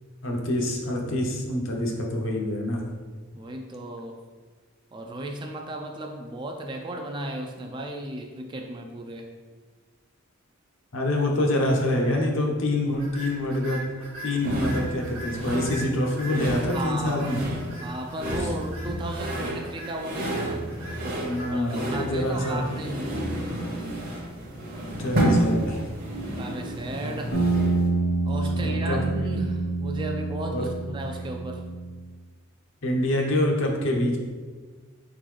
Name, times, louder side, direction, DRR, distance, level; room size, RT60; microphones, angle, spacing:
voice 1, 0.2-2.8 10.9-13.8 14.2-17.4 21.2-22.6 25.0-25.9 28.5-29.0 30.5-31.0 32.8-34.2, left 1 dB, 60° left, 0 dB, 0.8 m, -26 dB
voice 2, 3.3-4.2 4.9-9.3 16.7-17.3 17.8-20.7 21.5-23.2 26.3-27.4 28.2-31.6, right 1 dB, 20° right, 3 dB, 0.3 m, -35 dB
sound 1, 12.9-27.2, right 2 dB, 70° right, 1.0 m, -43 dB
sound 2, 14.4-27.9, right 1 dB, 40° right, 0.8 m, -30 dB
sound 3, 27.3-32.0, right 3 dB, 85° left, 1.2 m, -27 dB
4.1 x 3.8 x 3.2 m, 1.5 s
head